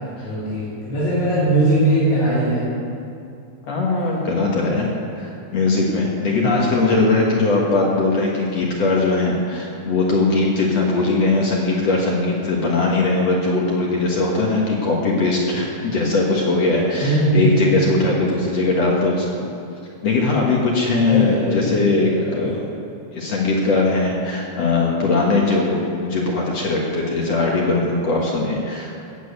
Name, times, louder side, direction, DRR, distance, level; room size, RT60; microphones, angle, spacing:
voice 1, 0.2-2.7 6.4-7.0 17.0-17.7 21.1-22.4, right 1 dB, 80° left, -12 dB, 5.9 m, -20 dB
voice 2, 3.7-4.9 5.2-19.5 20.0-22.6 23.1-28.9, left 3 dB, 55° left, -2 dB, 2.2 m, -20 dB
15.0 x 7.4 x 8.4 m, 2.6 s
omnidirectional pair, 4.2 m